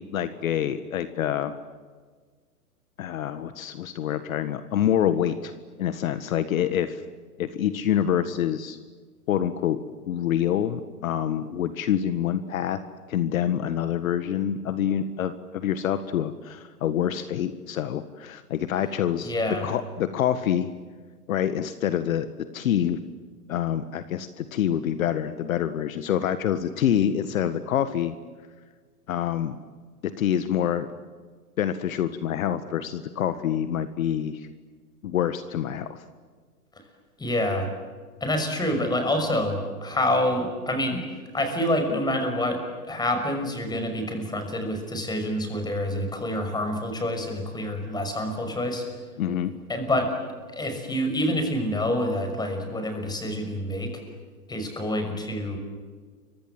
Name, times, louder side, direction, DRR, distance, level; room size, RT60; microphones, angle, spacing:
voice 1, 0.0-1.5 3.0-5.5 5.8-7.0 7.4-8.8 9.3-9.8 10.1-12.8 13.1-19.3 19.6-20.7 21.3-22.3 22.5-23.0 23.5-28.1 29.1-29.6 30.0-30.9 31.6-34.5 35.0-36.0 49.2-49.5, left 10 dB, 60° left, 11 dB, 1.7 m, -26 dB
voice 2, 19.2-19.7 37.2-37.7 38.2-41.0 41.3-48.9 49.7-50.2 50.5-54.0 54.5-55.6, left 1 dB, 10° left, 5 dB, 6.0 m, -27 dB
30.0 x 24.5 x 7.6 m, 1.5 s
hypercardioid pair, 125°, 47 cm